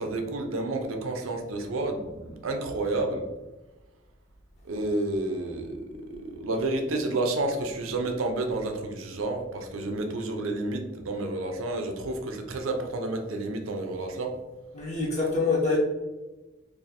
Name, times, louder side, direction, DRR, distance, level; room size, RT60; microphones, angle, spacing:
voice 1, 0.0-3.3 4.7-5.8 6.1-14.3, right 2 dB, 85° right, 4 dB, 0.6 m, -30 dB
voice 2, 14.7-15.8, left 3 dB, 35° left, -4 dB, 0.8 m, -25 dB
2.6 x 2.6 x 4.0 m, 1.1 s
head